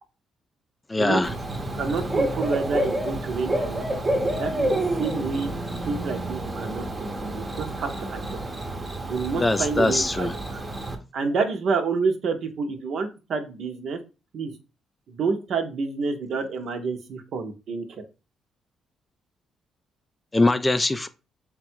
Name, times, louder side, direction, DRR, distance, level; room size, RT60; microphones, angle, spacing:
voice 1, 0.9-1.3 9.3-10.3 20.3-21.1, left 2 dB, 20° left, 0.3 m, -22 dB
Bird / Cricket, 1.2-10.9, right 1 dB, 25° right, 0.7 m, -29 dB
voice 2, 1.7-3.8 4.3-5.5 5.9-8.4 9.1-10.6 11.1-14.0 14.3-14.5 15.1-17.9, right 4 dB, 65° right, 0.7 m, -28 dB
3.5 x 2.3 x 4.4 m
cardioid pair, 90°, 0 cm